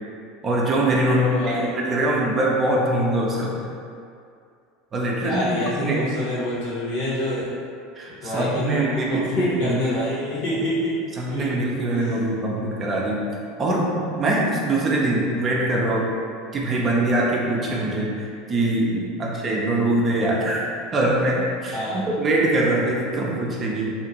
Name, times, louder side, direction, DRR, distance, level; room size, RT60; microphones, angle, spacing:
voice 1, 0.4-3.6 4.9-5.5 5.7-6.0 8.0-9.0 9.4-10.0 11.2-13.2 13.6-16.1 16.5-20.7 20.9-23.9, right 1 dB, 35° right, -3 dB, 0.6 m, -23 dB
voice 2, 1.1-1.8 5.2-7.5 8.1-11.0 11.3-11.5 11.9-12.2 19.2-19.3 21.7-22.0, left 1 dB, 65° left, -8 dB, 1.1 m, -27 dB
2.8 x 2.5 x 2.8 m, 2.4 s
hypercardioid pair, 80°, 0 cm